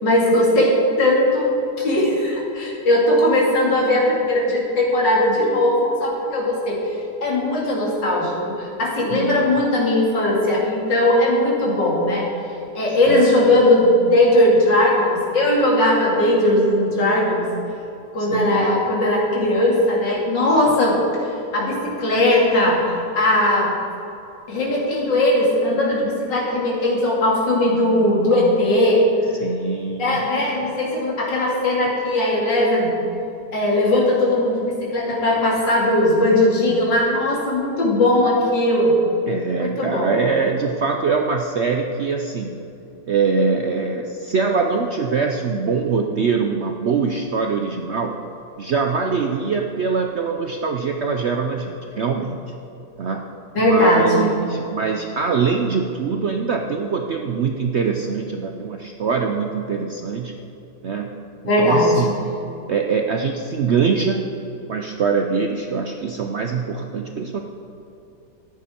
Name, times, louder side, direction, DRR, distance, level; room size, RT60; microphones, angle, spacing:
voice 1, 0.0-12.3 12.7-17.5 18.1-21.0 21.5-23.7 24.5-29.1 30.0-32.9 33.5-39.0 39.6-40.1 53.5-54.3 61.5-61.9 62.4-62.5, left 1 dB, 85° left, -4 dB, 3.2 m, -19 dB
voice 2, 18.2-18.8 29.4-30.2 39.3-42.5 43.1-48.2 48.6-52.4 53.0-53.2 53.6-60.3 60.8-61.1 61.6-62.2 62.7-64.2 64.7-67.4, right 5 dB, 65° right, 3 dB, 0.6 m, -23 dB
13.5 x 9.9 x 4.3 m, 2.7 s
omnidirectional pair, 1.9 m